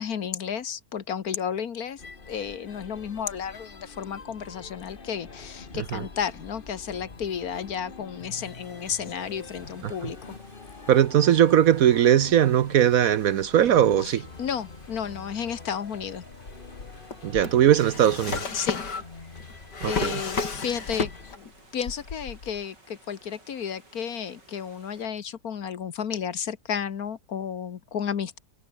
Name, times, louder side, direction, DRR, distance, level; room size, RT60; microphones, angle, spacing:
voice 1, 0.0-10.4 14.0-16.2 18.5-18.8 19.8-28.4, left 7 dB, 60° left, 1.7 m, -32 dB
sound 1, 2.0-21.4, left 4 dB, 30° left, 1.9 m, -45 dB
sound 2, 8.3-25.0, right 2 dB, 90° right, 8.2 m, -56 dB
voice 2, 10.9-14.3 17.2-18.4 19.8-20.1, right 10 dB, 65° right, 1.0 m, -20 dB
Drawer open or close, 16.3-21.5 21.8-22.6, left 4 dB, 75° left, 3.6 m, -33 dB
omnidirectional pair, 1.8 m